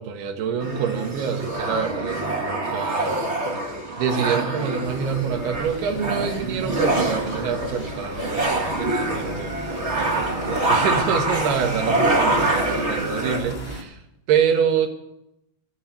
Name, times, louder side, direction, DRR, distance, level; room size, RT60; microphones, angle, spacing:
voice 1, 0.0-3.2 4.0-14.0 14.3-14.9, right 7 dB, 75° right, 4 dB, 3.4 m, -26 dB
sound 1, 0.6-13.4, right 2 dB, 55° right, 0.7 m, -25 dB
sound 2, 4.8-13.8, equal, 70° left, 0.4 m, -36 dB
12.0 x 8.8 x 8.9 m, 0.85 s
omnidirectional pair, 4.7 m